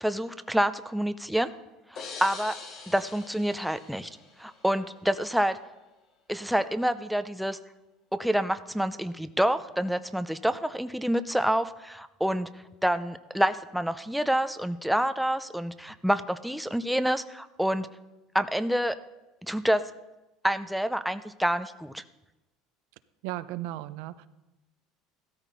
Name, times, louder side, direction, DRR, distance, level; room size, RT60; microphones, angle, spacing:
voice 1, 0.0-1.5 1.9-2.5 2.9-4.1 4.4-5.6 6.3-7.6 8.1-12.5 12.8-17.9 18.3-19.0 19.4-19.8 20.4-22.0, equal, ahead, 10 dB, 0.5 m, -27 dB
sound 1, 2.0-4.7, left 4 dB, 50° left, 3.2 m, -43 dB
voice 2, 23.2-24.3, right 15 dB, 75° right, 13 dB, 0.6 m, -35 dB
15.5 x 13.5 x 4.0 m, 1.0 s
supercardioid pair, 125°, 0 cm